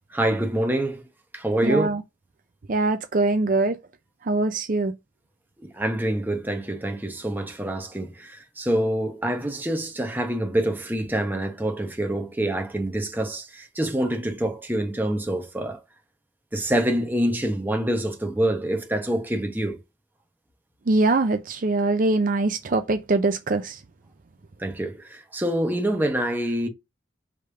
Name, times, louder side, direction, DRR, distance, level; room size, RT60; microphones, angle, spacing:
voice 1, 0.1-1.0 1.3-1.9 5.6-15.8 16.5-19.8 24.6-26.7, right 1 dB, 10° right, 1.1 m, -26 dB
voice 2, 1.6-2.0 2.7-3.8 4.2-4.9 20.9-23.8, right 2 dB, 45° right, 0.5 m, -22 dB
5.0 x 3.4 x 5.5 m
head